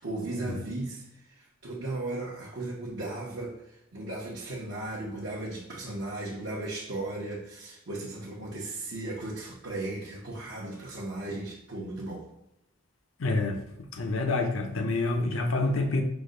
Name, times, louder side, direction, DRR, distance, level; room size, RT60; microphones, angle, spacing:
voice 1, 0.0-12.2, right 2 dB, 65° right, -6 dB, 0.8 m, -36 dB
voice 2, 13.2-13.6 13.9-16.0, left 2 dB, 70° left, 4 dB, 0.7 m, -27 dB
5.0 x 2.1 x 3.7 m, 0.88 s
head